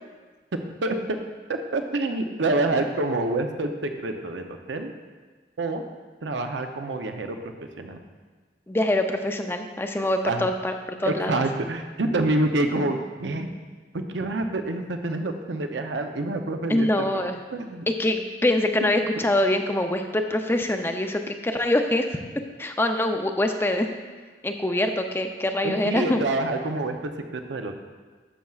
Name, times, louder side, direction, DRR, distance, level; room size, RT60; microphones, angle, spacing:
voice 1, 1.5-4.9 5.6-5.8 6.2-8.0 10.3-10.5 11.0-13.5 13.9-17.2 17.5-17.8 25.6-27.8, right 2 dB, 85° right, 6 dB, 0.7 m, -27 dB
voice 2, 8.7-10.7 11.0-11.4 16.7-17.4 18.0-22.2 22.6-23.9 24.4-26.2, left 1 dB, 15° left, 5 dB, 0.4 m, -24 dB
11.0 x 7.5 x 2.4 m, 1.4 s
head